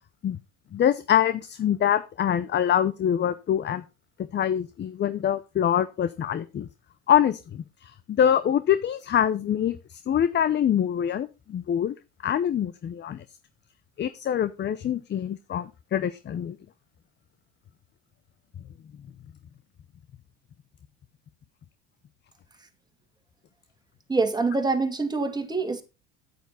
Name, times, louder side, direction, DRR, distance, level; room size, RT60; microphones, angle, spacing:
voice 1, 0.7-3.8 4.3-6.7 7.1-12.0 12.2-13.2 14.0-16.6, left 9 dB, 30° left, 0.7 m, -25 dB
voice 2, 24.1-25.8, right 3 dB, 10° right, 2.2 m, -25 dB
9.5 x 9.2 x 4.1 m
supercardioid pair, 105°, 35 cm